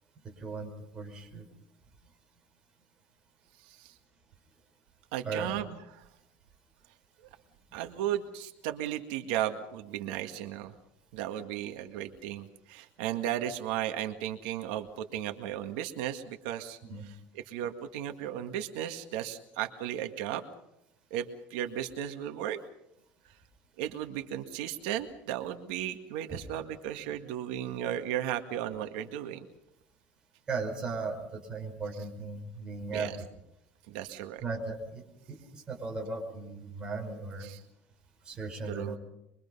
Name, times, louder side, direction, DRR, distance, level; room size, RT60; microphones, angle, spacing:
voice 1, 0.2-1.5 5.2-5.5 16.8-17.0 26.3-26.4 30.5-33.3 34.4-37.5 38.2-39.0, right 4 dB, 20° right, 1 dB, 4.9 m, -37 dB
voice 2, 5.1-5.8 7.7-10.7 11.1-16.8 17.5-20.4 21.1-22.6 23.8-29.5 32.9-33.1 33.9-34.4 37.4-37.6 38.7-39.0, right 11 dB, 85° right, 6 dB, 1.9 m, -35 dB
24.5 x 23.5 x 5.5 m, 0.83 s
cardioid pair, 180°, 5 cm